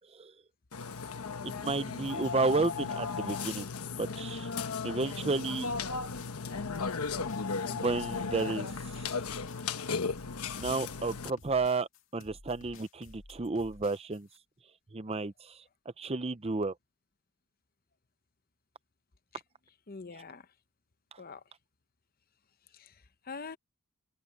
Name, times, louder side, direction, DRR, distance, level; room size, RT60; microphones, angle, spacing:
Burping eructation, 0.7-11.3, left 5 dB, 85° left, 1.1 m, -36 dB
voice 1, 1.4-3.7 4.0-4.5 4.8-5.7 7.7-8.7 10.6-14.3 14.9-15.6 16.0-16.7, right 3 dB, 25° right, 0.6 m, -32 dB
sound 1, 5.7-14.4, left 2 dB, 60° left, 2.3 m, -53 dB
voice 2, 19.9-20.5 21.2-21.4 22.7-23.6, left 4 dB, 40° left, 0.8 m, -45 dB
head